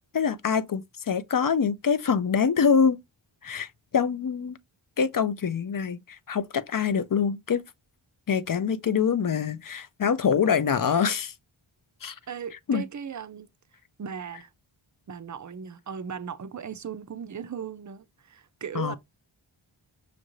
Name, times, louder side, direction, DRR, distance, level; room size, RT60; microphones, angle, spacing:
voice 1, 0.1-3.0 3.4-4.6 5.0-7.6 8.3-11.3 12.0-12.2 12.7-12.8 18.7-19.0, left 6 dB, 45° left, 0.5 m, -25 dB
voice 2, 12.3-13.5 14.0-14.5 15.1-19.0, right 7 dB, 40° right, 0.5 m, -37 dB
6.4 x 2.5 x 3.0 m
wide cardioid pair, 90°, 48 cm